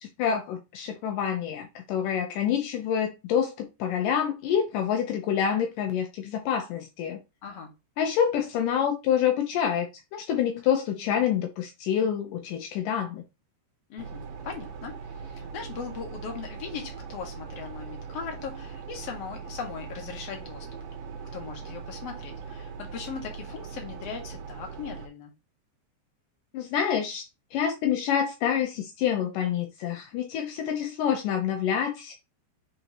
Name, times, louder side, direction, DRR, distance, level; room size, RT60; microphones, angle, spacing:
voice 1, 0.0-7.2 8.0-13.2 26.5-27.3 27.5-32.1, left 8 dB, 85° left, 1.9 m, -27 dB
voice 2, 7.4-7.7 13.9-20.7 21.3-25.3, left 6 dB, 50° left, 2.2 m, -39 dB
sound 1, 14.0-25.1, right 5 dB, 70° right, 2.3 m, -40 dB
8.8 x 4.2 x 3.0 m
omnidirectional pair, 5.0 m